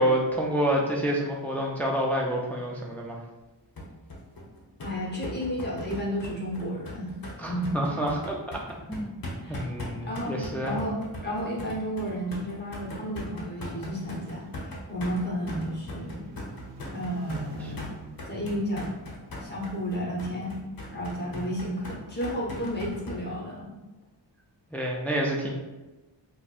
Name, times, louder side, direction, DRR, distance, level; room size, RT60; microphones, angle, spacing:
voice 1, 0.0-3.2 7.4-8.6 8.9-10.8 17.6-17.7 21.3-21.5 24.7-25.6, equal, 5° left, -2 dB, 0.4 m, -28 dB
sound 1, 3.8-23.2, left 1 dB, 50° left, 0.8 m, -39 dB
voice 2, 4.8-7.1 7.5-8.0 9.4-9.6 10.0-16.3 16.9-17.8 18.2-18.9 19.4-20.6 20.9-23.8, equal, 25° left, -4 dB, 1.0 m, -32 dB
sound 2, 14.0-19.5, equal, 70° right, 0.6 m, -46 dB
4.1 x 2.2 x 2.4 m, 1.1 s
wide cardioid pair, 100°, 44 cm